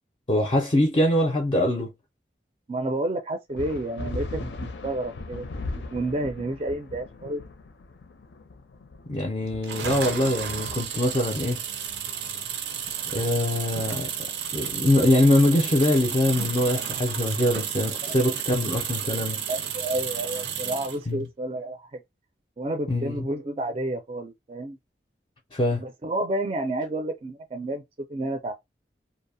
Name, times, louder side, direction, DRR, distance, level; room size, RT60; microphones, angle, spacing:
voice 1, 0.3-1.9 9.1-11.6 13.1-19.4 21.1-21.3 22.9-23.2 25.5-25.8, left 1 dB, 30° left, 0.4 m, -23 dB
voice 2, 2.7-5.5 5.7-7.4 18.0-18.1 19.5-22.0 22.6-24.8 25.8-28.5, right 1 dB, 35° right, 0.4 m, -30 dB
sound 1, 3.6-13.5, left 3 dB, 90° left, 0.5 m, -39 dB
sound 2, 9.6-21.0, right 8 dB, 85° right, 0.5 m, -32 dB
2.6 x 2.0 x 2.6 m
head